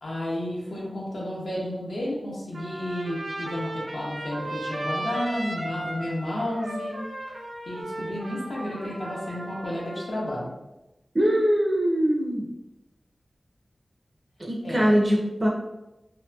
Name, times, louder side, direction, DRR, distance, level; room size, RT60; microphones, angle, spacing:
voice 1, 0.0-7.0 7.7-10.5 14.6-14.9, left 1 dB, 90° left, -5 dB, 0.7 m, -32 dB
Trumpet, 2.5-10.2, right 1 dB, 85° right, 0.6 m, -35 dB
voice 2, 11.1-12.5 14.4-15.5, equal, 30° right, -2 dB, 0.4 m, -22 dB
2.7 x 2.5 x 2.2 m, 0.98 s
wide cardioid pair, 60°, 0 cm